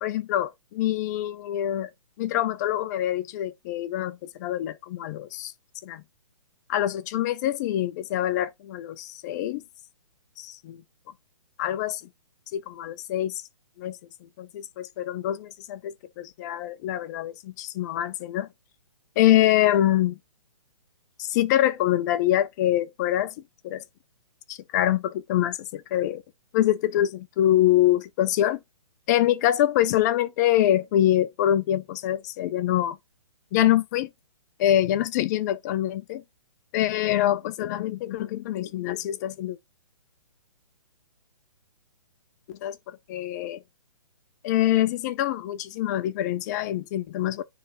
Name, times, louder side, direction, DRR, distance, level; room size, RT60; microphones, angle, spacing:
voice 1, 0.0-1.9 2.2-5.5 5.8-6.0 6.7-9.6 10.4-10.8 11.6-12.0 12.5-13.5 13.8-18.5 19.2-20.2 21.2-23.3 23.6-23.8 24.5-26.2 26.5-28.6 29.1-33.0 33.5-34.1 34.6-36.2 36.7-39.6 42.5-43.6 44.4-47.4, left 12 dB, 30° left, 0.6 m, -25 dB
9.4 x 3.4 x 3.0 m
hypercardioid pair, 140°, 18 cm